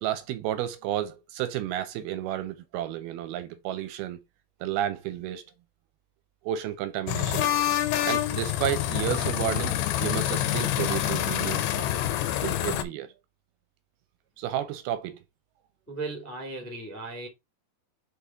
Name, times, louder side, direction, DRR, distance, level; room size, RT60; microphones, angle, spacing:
voice 1, 0.0-4.2 4.6-5.5 6.4-7.5 8.0-9.8 10.0-11.9 12.4-13.1 14.4-15.2, right 12 dB, 80° right, 2.4 m, -31 dB
sound 1, 7.1-12.8, left 12 dB, 85° left, 2.7 m, -27 dB
voice 2, 15.9-17.3, right 3 dB, 10° left, 0.6 m, -36 dB
5.7 x 4.9 x 3.5 m
omnidirectional pair, 4.7 m